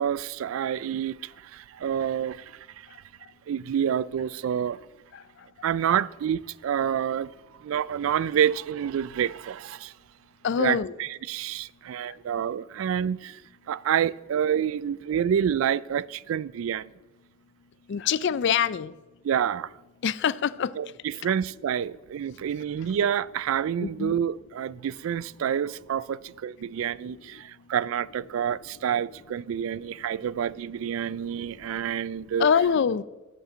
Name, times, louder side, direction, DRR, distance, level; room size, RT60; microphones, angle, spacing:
voice 1, 0.0-2.9 3.5-4.8 5.6-7.3 7.6-9.9 10.6-13.4 13.7-16.9 19.2-19.7 20.8-32.5, right 8 dB, 75° right, 0.3 m, -28 dB
voice 2, 10.4-10.9 17.9-18.9 20.0-20.7 21.2-21.3 23.8-24.2 32.4-33.0, left 7 dB, 60° left, 0.4 m, -24 dB
7.9 x 7.4 x 7.7 m
head